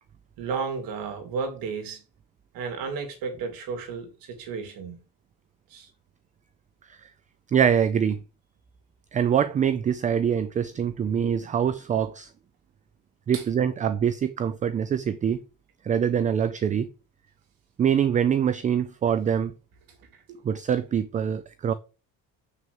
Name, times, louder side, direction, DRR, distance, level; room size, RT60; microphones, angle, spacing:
voice 1, 0.4-2.0 2.5-5.0 5.7-5.9 13.3-13.4 20.0-20.4, right 5 dB, 70° right, 3.4 m, -33 dB
voice 2, 7.5-8.2 9.1-12.3 13.3-15.4 15.8-16.9 17.8-19.5 20.4-21.7, right 8 dB, 20° right, 0.4 m, -24 dB
7.3 x 6.4 x 7.1 m
cardioid pair, 170°, 36 cm